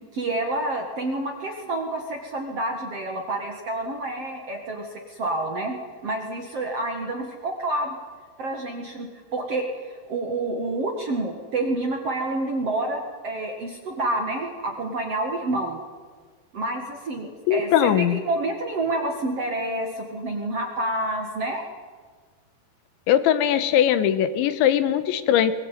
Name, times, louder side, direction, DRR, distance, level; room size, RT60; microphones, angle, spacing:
voice 1, 0.1-5.8 6.0-8.0 8.4-15.8 16.5-21.7, right 2 dB, 50° right, 2 dB, 1.9 m, -28 dB
voice 2, 17.5-18.2 23.1-25.5, left 10 dB, 80° left, 12 dB, 3.4 m, -20 dB
22.5 x 19.0 x 9.2 m, 1.5 s
omnidirectional pair, 5.3 m